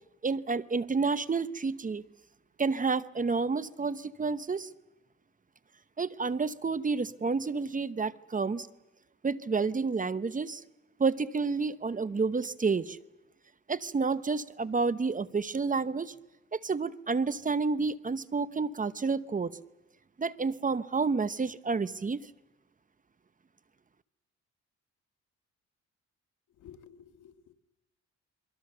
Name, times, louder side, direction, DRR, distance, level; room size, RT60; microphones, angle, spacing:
voice 1, 0.2-2.0 2.6-4.7 6.0-8.7 9.2-10.6 11.0-13.0 13.7-16.1 16.5-19.5 20.2-22.2, right 4 dB, 25° right, 15 dB, 0.9 m, -30 dB
voice 2, 26.5-27.5, left 8 dB, 80° left, 8 dB, 1.9 m, -53 dB
28.5 x 22.5 x 6.8 m, 0.99 s
cardioid pair, 90°, 30 cm